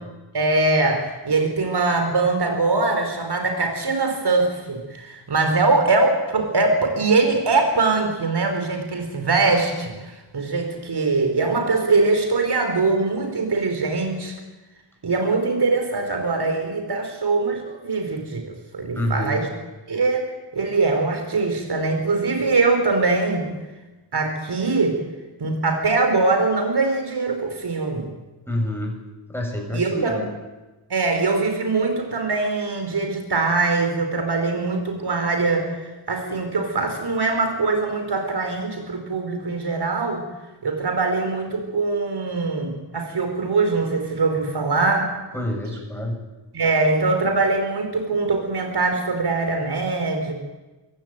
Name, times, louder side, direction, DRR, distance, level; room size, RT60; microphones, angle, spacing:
voice 1, 0.3-9.9 10.3-14.3 15.0-19.5 19.9-20.3 20.5-23.5 24.1-25.0 25.4-28.1 29.7-30.3 30.9-40.2 40.6-45.1 46.5-50.3, right 3 dB, 65° right, 5 dB, 4.8 m, -22 dB
voice 2, 18.9-19.4 28.5-28.9 29.3-30.2 45.3-46.2, left 1 dB, 5° left, 1 dB, 7.3 m, -27 dB
23.0 x 17.0 x 9.2 m, 1.1 s
wide cardioid pair, 95°, 42 cm